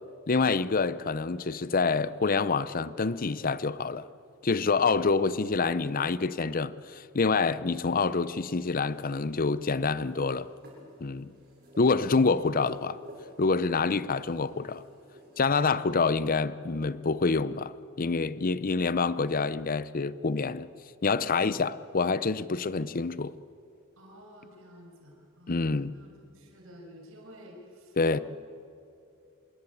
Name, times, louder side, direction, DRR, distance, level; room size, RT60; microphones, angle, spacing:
voice 1, 0.3-4.1 4.4-10.5 11.0-11.3 11.8-13.0 13.4-14.8 15.4-17.7 18.0-20.7 21.0-23.3 25.5-26.0 28.0-28.2, left 4 dB, 40° left, 0.7 m, -27 dB
sound 1, 8.6-16.1, equal, 50° right, 7.7 m, -53 dB
voice 2, 11.5-12.3 24.0-28.2, equal, 70° right, 5.8 m, -52 dB
25.5 x 22.0 x 8.5 m
head